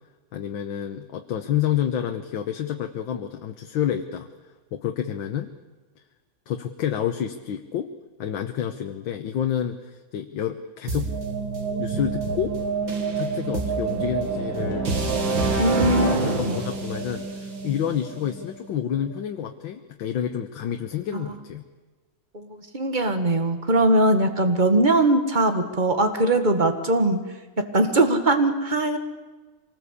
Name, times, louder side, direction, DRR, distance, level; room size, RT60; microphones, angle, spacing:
voice 1, 0.3-4.3 4.7-5.5 6.5-7.9 8.2-11.2 11.8-12.6 13.2-14.9 16.4-21.6, left 9 dB, 85° left, 6 dB, 1.8 m, -29 dB
sound 1, 10.9-18.8, right 4 dB, 80° right, 3.1 m, -27 dB
voice 2, 15.6-16.6 21.1-21.2 22.3-27.2 27.6-29.0, right 2 dB, 25° right, 7 dB, 1.9 m, -21 dB
25.0 x 19.5 x 8.3 m, 1.3 s
omnidirectional pair, 2.1 m